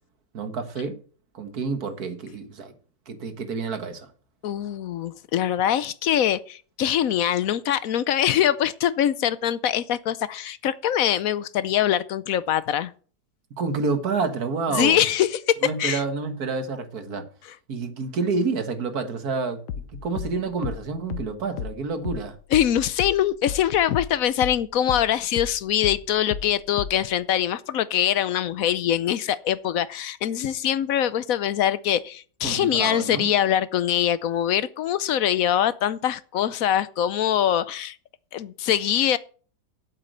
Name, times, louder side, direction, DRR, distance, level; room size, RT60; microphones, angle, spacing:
voice 1, 0.3-1.0 1.3-2.7 3.1-4.1 13.6-15.0 15.6-17.3 17.7-19.6 19.9-22.4 32.4-33.3, right 4 dB, 65° right, 1.9 m, -28 dB
voice 2, 4.4-12.9 14.7-16.0 22.5-37.9 38.3-39.2, left 10 dB, 65° left, 1.0 m, -23 dB
sound 1, 19.7-24.6 24.9-27.1, left 8 dB, 85° left, 1.5 m, -33 dB
8.5 x 8.2 x 7.8 m
omnidirectional pair, 1.8 m